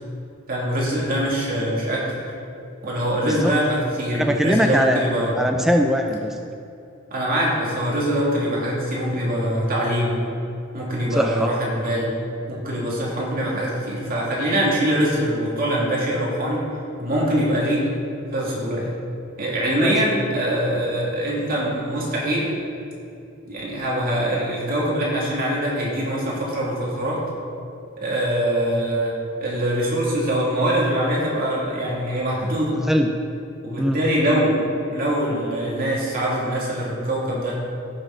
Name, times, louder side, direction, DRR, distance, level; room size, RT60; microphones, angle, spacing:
voice 1, 0.5-2.2 2.8-5.3 7.1-10.2 10.7-12.1 12.5-16.6 17.0-17.8 18.3-18.9 19.4-22.5 23.5-27.2 28.0-29.1 29.4-32.7 33.6-34.6 34.9-37.6, right 1 dB, 45° right, -5 dB, 2.4 m, -23 dB
voice 2, 3.2-3.5 4.1-5.0 5.3-6.4 11.2-11.5 19.8-20.0 32.9-33.1 33.8-34.0, equal, ahead, 3 dB, 0.4 m, -21 dB
15.5 x 6.5 x 3.8 m, 2.6 s
head